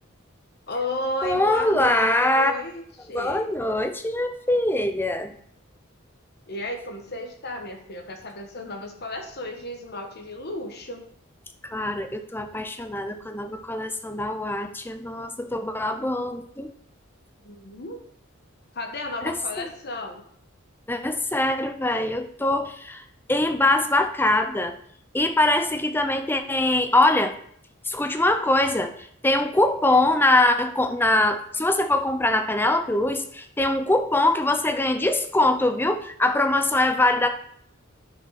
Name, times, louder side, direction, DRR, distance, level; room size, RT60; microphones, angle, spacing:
voice 1, 0.7-3.5 6.5-11.0 17.4-18.0 18.7-20.2, left 1 dB, 50° left, 4 dB, 1.3 m, -33 dB
voice 2, 1.2-2.5 3.1-5.3 11.7-16.7 19.2-19.6 20.9-23.0 23.3-24.7 25.1-27.4 27.9-28.9 29.2-37.3, left 2 dB, 10° left, 7 dB, 0.6 m, -23 dB
9.6 x 5.1 x 4.1 m, 0.66 s
head